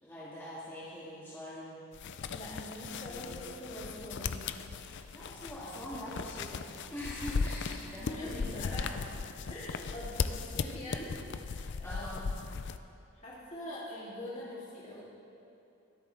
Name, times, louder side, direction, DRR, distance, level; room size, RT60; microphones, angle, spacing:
voice 1, 0.0-1.8 2.8-3.3 4.8-9.1 11.8-12.3, equal, 10° left, -10 dB, 2.1 m, -44 dB
sound 1, 1.9-12.8, left 5 dB, 55° left, 0.4 m, -37 dB
voice 2, 2.3-4.4 7.8-8.9 9.5-12.1 13.1-15.0, left 1 dB, 35° left, -7 dB, 2.9 m, -43 dB
23.0 x 8.6 x 3.5 m, 2.7 s
head